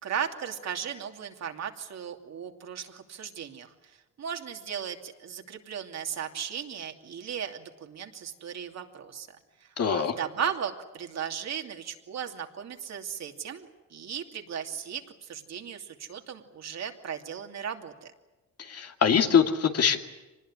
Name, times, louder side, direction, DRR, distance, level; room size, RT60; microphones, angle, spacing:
voice 1, 0.0-18.1, right 8 dB, 60° right, 4 dB, 2.8 m, -36 dB
voice 2, 9.8-10.1 18.6-20.0, left 7 dB, 55° left, 5 dB, 2.4 m, -23 dB
25.0 x 20.0 x 9.9 m, 1.1 s
cardioid pair, 90°, 30 cm